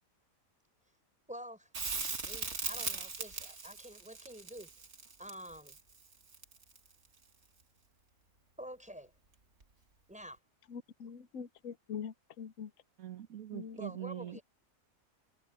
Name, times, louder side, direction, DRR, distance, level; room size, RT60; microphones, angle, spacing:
voice 1, 1.3-1.7 2.2-4.7 5.2-5.8 8.6-9.1 10.1-10.4 13.8-14.4, equal, 5° right, 5.5 m, -47 dB
Crackle, 1.7-6.9 9.6-9.7, right 4 dB, 55° right, 2.1 m, -39 dB
voice 2, 10.7-12.7 13.5-13.8, left 7 dB, 70° left, 1.2 m, -43 dB
voice 3, 13.0-14.4, right 12 dB, 80° right, 1.7 m, -43 dB
omnidirectional pair, 1.5 m